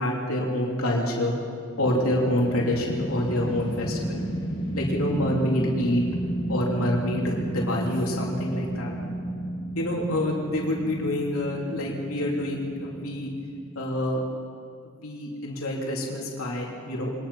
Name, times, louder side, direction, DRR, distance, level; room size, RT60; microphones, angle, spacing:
voice 1, 0.0-1.3 1.8-4.2 4.7-6.1 6.5-8.9 9.7-13.3 13.7-14.2 14.8-17.1, left 1 dB, 85° left, -2 dB, 3.4 m, -27 dB
sound 1, 1.8-14.0, right 1 dB, 25° left, 2.8 m, -32 dB
23.5 x 19.5 x 5.7 m, 2.2 s
head